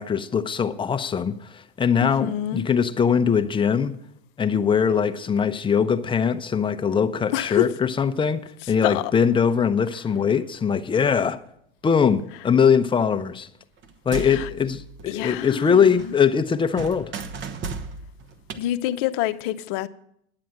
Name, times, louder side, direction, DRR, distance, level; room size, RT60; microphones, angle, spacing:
voice 1, 0.0-4.0 4.4-8.4 8.7-11.4 11.8-13.5 14.1-17.1, left 7 dB, 15° left, 0.7 m, -21 dB
voice 2, 2.0-2.7 7.3-7.6 8.8-9.0 14.2-14.5 15.1-16.1 18.6-19.9, left 14 dB, 60° left, 0.7 m, -27 dB
sound 1, 13.8-15.6 15.9-18.6, right 4 dB, 40° right, 1.0 m, -36 dB
10.5 x 7.7 x 7.4 m
hypercardioid pair, 95°, 30 cm